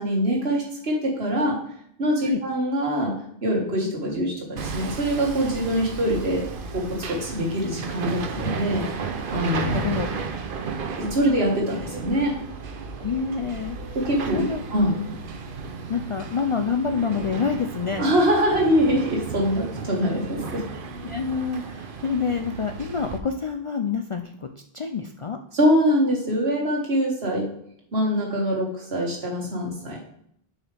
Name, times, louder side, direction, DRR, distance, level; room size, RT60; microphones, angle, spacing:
voice 1, 0.0-1.6 2.0-3.1 3.4-6.4 6.7-8.9 9.3-9.8 11.0-12.3 13.9-14.4 14.7-15.0 18.0-20.6 25.5-27.5 27.9-30.0, equal, 80° right, -1 dB, 2.1 m, -23 dB
Hammer, 4.6-23.2, right 5 dB, 60° right, 0.9 m, -34 dB
voice 2, 9.7-10.1 13.0-13.8 14.3-14.6 15.9-18.1 21.0-24.5 24.7-25.4, left 6 dB, 55° left, 5 dB, 0.3 m, -27 dB
6.7 x 5.5 x 3.4 m, 0.69 s
omnidirectional pair, 1.0 m